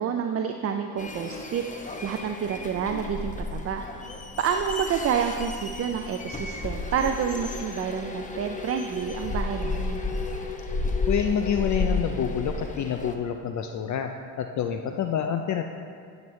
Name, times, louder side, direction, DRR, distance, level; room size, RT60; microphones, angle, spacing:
voice 1, 0.0-3.8 4.4-10.0, right 7 dB, 35° right, 5 dB, 0.5 m, -29 dB
sound 1, 1.0-13.1, left 3 dB, 20° left, 0.9 m, -32 dB
voice 2, 11.1-14.1 14.4-15.6, left 8 dB, 45° left, 6 dB, 0.5 m, -27 dB
13.5 x 7.2 x 3.2 m, 2.3 s
supercardioid pair, 90°, 41 cm